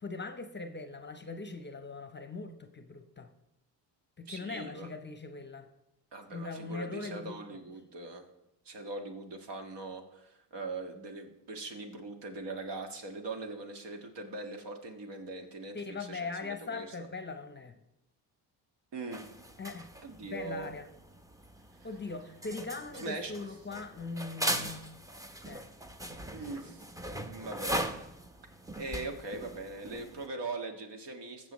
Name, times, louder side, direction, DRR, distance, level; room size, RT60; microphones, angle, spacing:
voice 1, 0.0-3.3 4.2-5.7 6.3-7.4 15.7-17.8 19.6-19.9 20.2-20.9 21.8-24.9 25.4-25.7, left 3 dB, 25° left, 8 dB, 0.8 m, -40 dB
voice 2, 4.3-4.9 6.1-8.2 8.7-16.9 18.9-19.3 20.0-20.7 23.0-23.3 26.3-26.8 27.2-27.7 28.8-31.5, right 3 dB, 60° right, 4 dB, 1.7 m, -41 dB
sound 1, 19.1-30.3, right 1 dB, 5° right, 0.7 m, -40 dB
15.0 x 6.8 x 3.1 m, 0.88 s
supercardioid pair, 75°, 48 cm